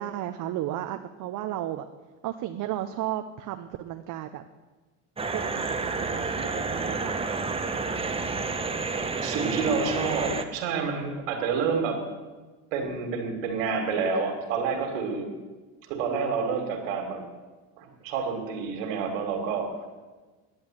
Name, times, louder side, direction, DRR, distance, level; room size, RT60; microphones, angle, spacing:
voice 1, 0.0-1.9 2.2-4.4 5.3-7.5, right 12 dB, 55° right, 6 dB, 0.8 m, -34 dB
sound 1, 5.2-10.5, right 4 dB, 15° right, 1.0 m, -30 dB
voice 2, 9.2-12.0 12.7-15.3 15.9-17.2 17.8-19.7, right 5 dB, 90° right, 4 dB, 2.4 m, -28 dB
10.5 x 7.8 x 9.0 m, 1.3 s
supercardioid pair, 90°, 38 cm